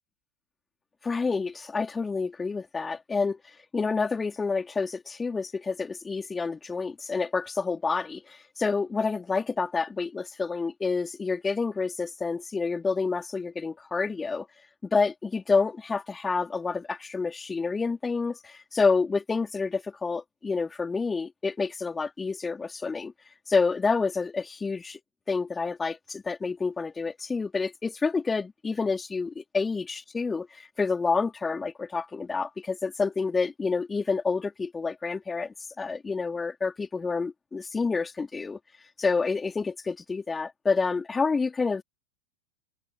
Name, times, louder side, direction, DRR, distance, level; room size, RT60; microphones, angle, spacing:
voice 1, 1.0-3.4 3.7-14.5 14.9-23.1 23.5-25.0 25.3-30.5 30.8-38.6 39.0-41.8, left 4 dB, 15° left, 4.0 m, -28 dB
figure-of-eight pair, 90°, 0 cm